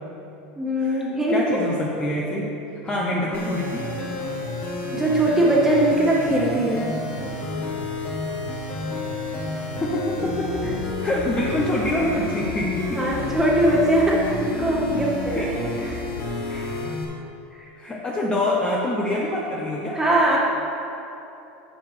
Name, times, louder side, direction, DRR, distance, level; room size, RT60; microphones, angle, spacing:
voice 1, 0.6-1.6 4.9-6.9 10.6-10.8 12.9-15.6 15.9-16.0 16.5-16.7 17.6-17.7 19.9-20.4, right 1 dB, 10° right, -5 dB, 1.9 m, -21 dB
voice 2, 1.3-3.8 9.8-10.6 11.0-13.2 15.3-15.5 17.8-20.0, left 1 dB, 20° left, -3 dB, 0.9 m, -25 dB
sound 1, 3.3-17.0, left 2 dB, 45° left, 1.6 m, -30 dB
10.0 x 6.8 x 3.4 m, 2.9 s
supercardioid pair, 125°, 5 cm